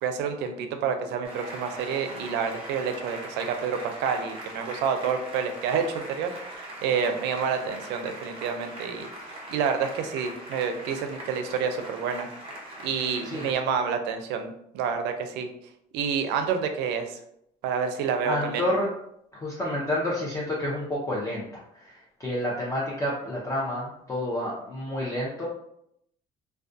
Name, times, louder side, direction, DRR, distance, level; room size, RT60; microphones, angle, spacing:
voice 1, 0.0-9.1 9.5-12.3 12.8-15.5 15.9-17.2 17.6-18.7, right 6 dB, 85° right, 7 dB, 0.4 m, -28 dB
Applause, 1.2-13.5, right 1 dB, 35° right, 0.9 m, -41 dB
voice 2, 18.2-18.9 19.3-21.5 21.7-25.5, left 1 dB, 20° left, -6 dB, 0.5 m, -29 dB
2.4 x 2.2 x 2.5 m, 0.75 s
cardioid pair, 110°, 17 cm